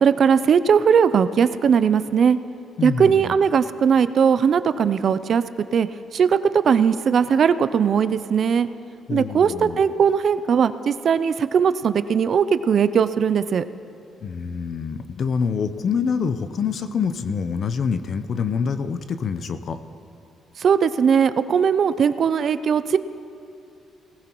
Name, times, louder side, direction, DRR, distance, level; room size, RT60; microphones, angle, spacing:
voice 1, 0.0-2.4 2.8-5.4 5.7-5.9 6.1-8.7 9.1-13.6 20.6-23.0, right 7 dB, 55° right, 14 dB, 0.4 m, -19 dB
voice 2, 2.8-3.3 9.1-9.8 14.2-19.8, left 6 dB, 55° left, 11 dB, 0.7 m, -26 dB
19.0 x 15.0 x 3.0 m, 2.7 s
cardioid pair, 90°, 0 cm